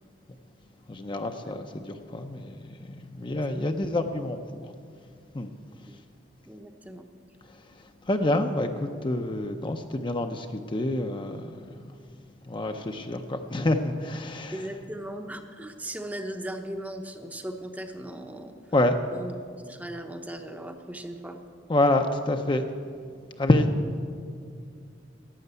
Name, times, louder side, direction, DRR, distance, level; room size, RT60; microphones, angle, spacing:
voice 1, 0.9-4.7 5.3-5.5 8.0-11.5 11.8-11.9 12.5-14.6 18.7-18.9 21.7-22.6 23.4-23.7, left 1 dB, 25° left, 6 dB, 0.6 m, -27 dB
voice 2, 3.2-4.0 5.9-6.0 6.5-7.0 14.5-18.5 19.1-21.4, right 1 dB, 10° right, 6 dB, 0.8 m, -38 dB
12.0 x 8.6 x 8.2 m, 2.2 s
head